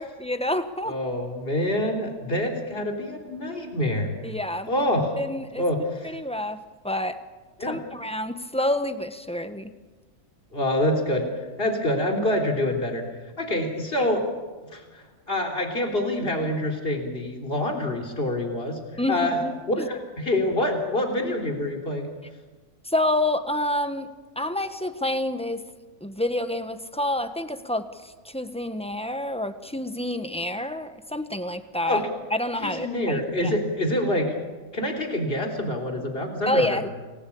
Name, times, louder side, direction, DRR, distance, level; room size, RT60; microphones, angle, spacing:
voice 1, 0.0-1.0 4.2-4.7 5.2-5.6 6.0-7.2 7.6-9.7 14.0-14.1 19.0-19.9 22.8-25.6 26.0-32.0 32.3-33.5 36.5-36.9, left 1 dB, 5° left, 9 dB, 1.2 m, -28 dB
voice 2, 0.9-4.1 4.7-5.1 5.6-6.1 7.6-7.8 10.5-11.3 11.6-13.0 13.4-14.3 14.6-18.8 19.1-22.1 31.9-32.1 32.6-34.4 34.7-36.9, left 1 dB, 40° left, 3 dB, 3.9 m, -26 dB
29.0 x 20.5 x 8.7 m, 1.3 s
omnidirectional pair, 1.5 m